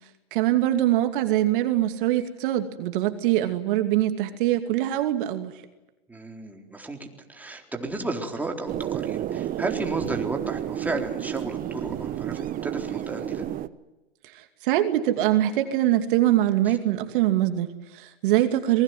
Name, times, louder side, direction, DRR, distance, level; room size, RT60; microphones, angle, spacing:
voice 1, 0.3-5.5 14.3-18.8, right 13 dB, 60° right, 7 dB, 2.6 m, -23 dB
voice 2, 6.1-13.5 18.3-18.4, right 2 dB, 5° right, 2 dB, 4.0 m, -33 dB
sound 1, 8.7-13.7, right 12 dB, 30° right, 1.1 m, -31 dB
26.5 x 21.5 x 9.5 m, 1.0 s
hypercardioid pair, 120°, 30 cm